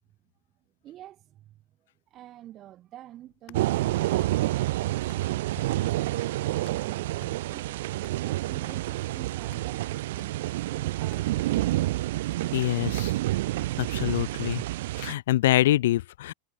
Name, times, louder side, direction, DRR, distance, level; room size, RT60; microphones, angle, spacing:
voice 1, 0.8-1.6 2.1-7.9 8.1-11.7, right 13 dB, 35° right, 5.6 m, -48 dB
sound 1, 3.2-5.5 5.8-11.8, left 40 dB or more, 55° left, 6.2 m, -57 dB
sound 2, 3.5-15.1, right 16 dB, 70° right, 0.9 m, -28 dB
voice 2, 12.5-13.1 13.8-14.6 15.0-16.3, left 14 dB, 75° left, 0.5 m, -25 dB
supercardioid pair, 130°, 0 cm